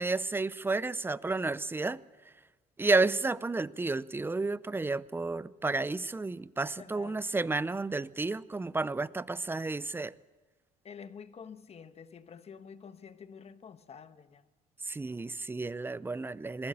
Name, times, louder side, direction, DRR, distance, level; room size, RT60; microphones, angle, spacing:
voice 1, 0.0-2.0 2.8-10.1 14.8-16.7, right 3 dB, 15° right, 0.5 m, -31 dB
voice 2, 6.7-7.2 10.8-14.5, left 6 dB, 40° left, 1.2 m, -48 dB
21.0 x 16.0 x 8.5 m
cardioid pair, 110°, 17 cm